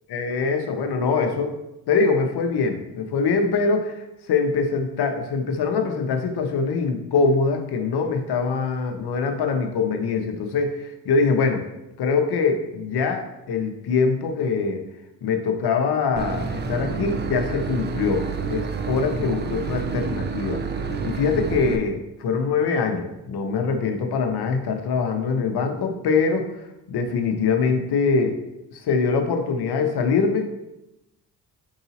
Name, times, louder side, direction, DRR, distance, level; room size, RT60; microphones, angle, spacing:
voice 1, 0.1-1.5 1.9-4.0 4.3-11.6 12.0-14.8 15.2-20.6 21.0-26.5 26.9-28.4 28.8-30.5, left 4 dB, 60° left, 4 dB, 0.8 m, -23 dB
Boat Water vehicle / Engine, 16.2-21.8, right 5 dB, 25° right, 0.4 m, -28 dB
4.7 x 2.8 x 2.8 m, 0.90 s
supercardioid pair, 55°, 43 cm